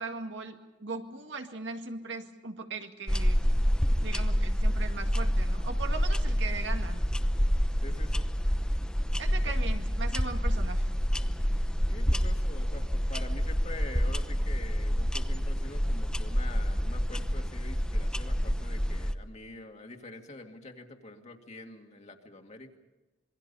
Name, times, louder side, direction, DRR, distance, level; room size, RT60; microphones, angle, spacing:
voice 1, 0.0-3.4 4.0-7.1 9.2-11.0, right 4 dB, 80° right, 5 dB, 2.1 m, -39 dB
sound 1, 3.1-19.1, equal, 5° left, 0.8 m, -28 dB
voice 2, 7.8-8.3 9.4-9.5 11.9-22.8, left 2 dB, 40° left, 3 dB, 2.2 m, -46 dB
27.0 x 22.5 x 5.5 m, 1.1 s
head